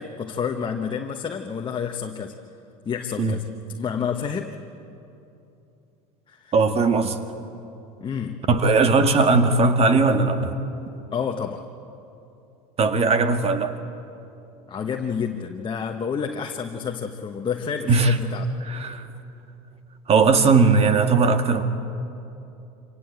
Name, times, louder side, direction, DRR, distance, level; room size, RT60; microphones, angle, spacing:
voice 1, 0.0-2.4 2.8-3.4 3.8-4.5 6.3-6.5 8.0-8.4 11.1-11.6 14.7-18.5, left 6 dB, 25° left, 3 dB, 1.2 m, -29 dB
voice 2, 6.5-7.2 8.5-10.6 12.8-13.7 17.9-18.2 18.6-19.1 20.1-21.6, right 4 dB, 35° right, 8 dB, 1.8 m, -19 dB
25.5 x 18.0 x 8.1 m, 2.9 s
hypercardioid pair, 90°, 18 cm